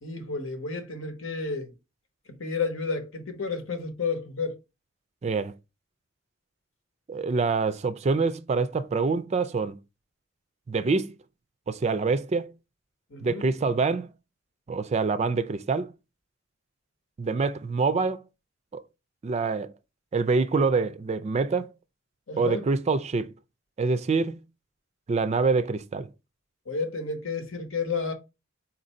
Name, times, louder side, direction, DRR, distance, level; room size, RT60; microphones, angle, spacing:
voice 1, 0.0-1.7 2.3-4.6 13.1-13.4 22.3-22.6 26.7-28.1, left 4 dB, 85° left, 1.1 m, -31 dB
voice 2, 5.2-5.5 7.1-9.8 10.7-11.1 11.7-12.5 13.2-14.1 14.7-15.9 17.2-18.2 18.7-18.8 19.2-19.7 20.1-21.7 22.4-23.3 23.8-24.4 25.1-26.1, right 4 dB, 35° right, 0.3 m, -25 dB
4.3 x 2.6 x 4.2 m
head